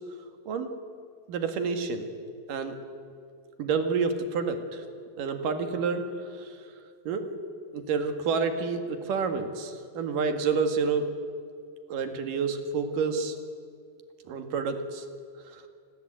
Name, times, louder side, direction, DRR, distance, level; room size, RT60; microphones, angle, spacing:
voice 1, 1.3-2.0 2.5-2.7 3.6-4.8 5.2-6.0 6.3-6.5 7.1-7.2 7.7-11.1 11.9-13.4 14.3-15.0, right 5 dB, 55° right, 7 dB, 3.0 m, -28 dB
26.0 x 19.0 x 9.3 m, 2.3 s
omnidirectional pair, 5.1 m